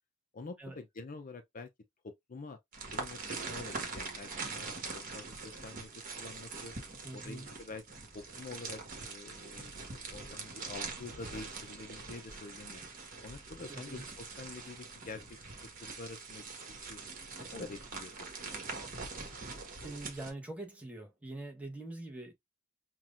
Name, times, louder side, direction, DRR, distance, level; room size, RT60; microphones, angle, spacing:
voice 1, 0.3-1.7 2.0-2.6 2.9-4.7 4.9-6.7 7.1-7.8 8.1-9.8 10.1-12.8 13.2-17.0 17.4-18.6, left 3 dB, 40° left, 0.5 m, -47 dB
sound 1, 2.7-20.3, right 4 dB, 45° right, 1.3 m, -43 dB
voice 2, 7.0-7.5 13.7-14.0 19.4-22.3, right 2 dB, 5° right, 1.1 m, -44 dB
5.9 x 2.3 x 2.5 m
head